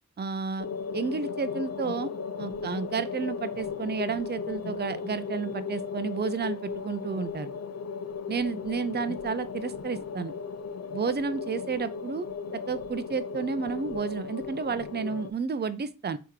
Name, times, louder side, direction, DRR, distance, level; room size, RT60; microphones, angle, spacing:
voice 1, 0.2-0.7 0.9-2.1 2.4-7.5 8.3-10.3 10.9-12.3 12.7-16.2, right 5 dB, 35° right, 0.4 m, -31 dB
sound 1, 0.6-15.3, left 5 dB, 60° left, 0.4 m, -36 dB
3.6 x 2.9 x 4.6 m
wide cardioid pair, 45°, 30 cm